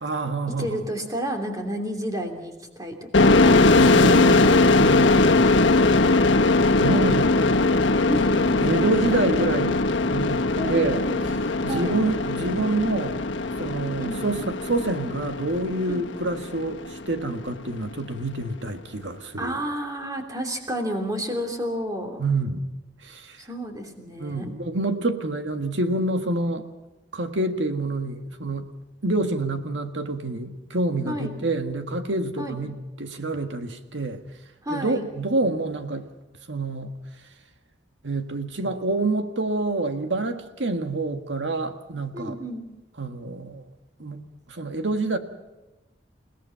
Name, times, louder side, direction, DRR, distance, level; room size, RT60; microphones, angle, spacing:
voice 1, 0.0-0.8 3.8-5.3 6.8-7.5 8.6-10.4 10.7-11.0 11.6-13.2 13.6-19.6 22.2-22.6 23.0-23.4 24.2-26.7 27.1-28.7 29.0-34.2 34.7-36.1 36.5-36.9 38.0-42.4 43.0-43.6 44.0-44.2 44.5-45.2, right 2 dB, 80° right, 1.8 m, -27 dB
voice 2, 0.6-3.9 8.1-8.8 10.6-11.3 11.7-12.0 14.0-14.2 15.9-16.0 19.4-22.2 23.4-24.5 31.1-31.3 32.4-32.6 34.6-35.1 42.1-42.6, equal, 20° right, 3.0 m, -31 dB
sound 1, 3.1-16.6, left 2 dB, 85° left, 1.4 m, -20 dB
29.5 x 18.0 x 5.8 m
head